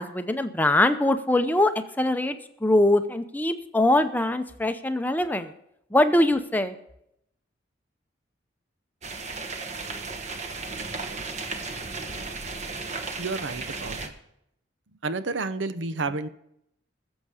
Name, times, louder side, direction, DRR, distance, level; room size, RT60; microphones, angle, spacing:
voice 1, 0.0-1.7 2.0-2.4 2.6-5.5 5.9-6.7, left 1 dB, 10° left, 9 dB, 0.6 m, -22 dB
sound 1, 9.0-14.1, right 3 dB, 35° right, 1.2 m, -35 dB
voice 2, 13.2-14.1 15.0-16.3, right 3 dB, 75° right, 12 dB, 0.7 m, -30 dB
20.5 x 7.2 x 4.9 m, 0.78 s
head